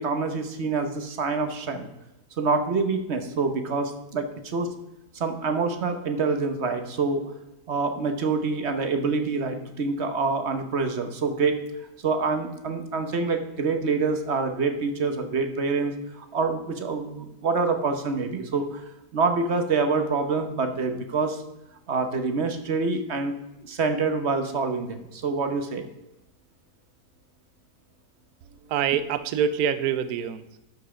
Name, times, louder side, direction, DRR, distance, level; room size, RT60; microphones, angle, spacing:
voice 1, 0.0-1.9 2.4-4.7 5.1-7.2 7.7-11.6 12.0-18.8 19.1-21.4 21.9-23.3 23.6-25.8, right 4 dB, 50° right, 7 dB, 1.2 m, -26 dB
voice 2, 28.7-30.6, right 8 dB, 75° right, 13 dB, 1.1 m, -25 dB
12.5 x 5.4 x 5.0 m, 0.92 s
omnidirectional pair, 1.6 m